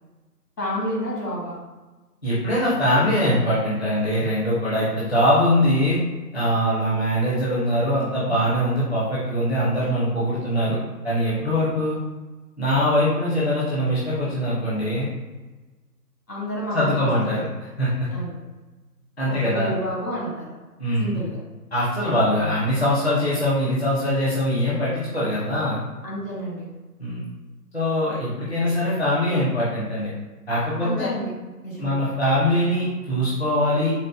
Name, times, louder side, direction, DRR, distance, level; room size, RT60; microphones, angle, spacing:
voice 1, 0.6-1.6 16.3-17.1 18.1-18.3 19.3-20.5 21.0-21.4 26.0-26.7 28.6-28.9 30.8-31.3 31.6-31.9, equal, 80° left, -4 dB, 1.4 m, -30 dB
voice 2, 2.2-6.0 6.3-10.8 11.0-12.0 12.6-15.1 16.7-18.1 19.2-19.7 20.8-21.2 21.7-25.8 27.0-27.2 27.7-30.1 30.5-31.1 31.8-33.9, equal, 40° left, -9 dB, 0.6 m, -22 dB
3.9 x 2.1 x 2.3 m, 1.2 s
figure-of-eight pair, 165°, 49 cm